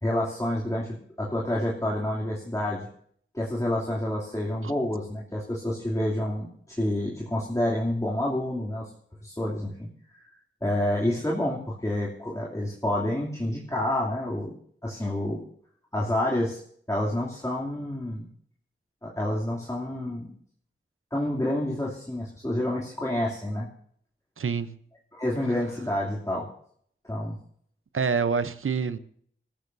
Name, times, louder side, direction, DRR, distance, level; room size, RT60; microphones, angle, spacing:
voice 1, 0.0-2.9 3.3-8.9 9.2-9.9 10.6-14.5 14.8-15.4 15.9-16.6 16.9-18.3 19.0-20.3 21.1-23.7 25.1-26.5 27.0-27.4, left 1 dB, 15° left, -4 dB, 2.9 m, -28 dB
voice 2, 24.4-24.7 27.9-29.0, right 5 dB, 85° right, 12 dB, 0.8 m, -26 dB
26.5 x 14.0 x 2.7 m, 0.62 s
wide cardioid pair, 50°, 21 cm